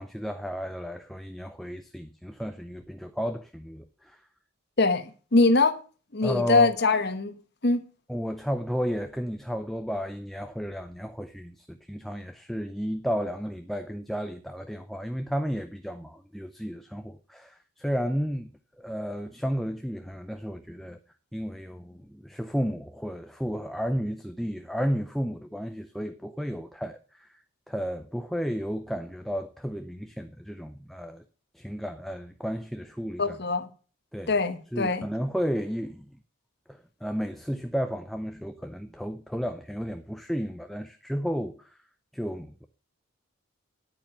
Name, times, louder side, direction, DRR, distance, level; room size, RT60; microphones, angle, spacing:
voice 1, 0.0-4.2 6.2-6.7 8.1-18.5 18.8-21.0 21.3-27.3 27.7-31.2 31.5-33.4 34.1-34.4 34.7-36.1 36.7-41.8 42.1-42.7, equal, ahead, 0.5 m, -33 dB
voice 2, 5.3-5.7 6.1-7.4 7.6-7.9 33.2-33.7 34.3-35.1, left 3 dB, 50° left, 1.1 m, -22 dB
9.8 x 8.9 x 5.5 m
head